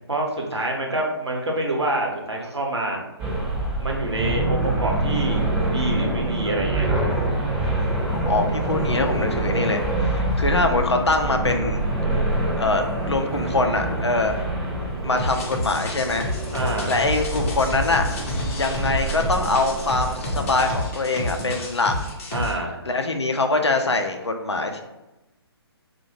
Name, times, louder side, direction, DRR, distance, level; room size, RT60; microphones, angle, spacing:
voice 1, 0.1-3.0 3.8-5.4 5.7-7.0 16.5-16.9 22.3-22.8, right 1 dB, 85° right, 0 dB, 0.7 m, -26 dB
sound 1, 3.2-20.8, right 2 dB, 15° right, 0.5 m, -26 dB
voice 2, 8.3-11.8 12.6-14.4 15.0-16.3 16.9-18.0 18.6-21.9 22.8-24.8, left 2 dB, 90° left, 5 dB, 0.4 m, -23 dB
sound 2, 15.2-22.5, left 1 dB, 30° left, 0.5 m, -29 dB
2.6 x 2.1 x 3.0 m, 1.0 s
figure-of-eight pair, 135°, 14 cm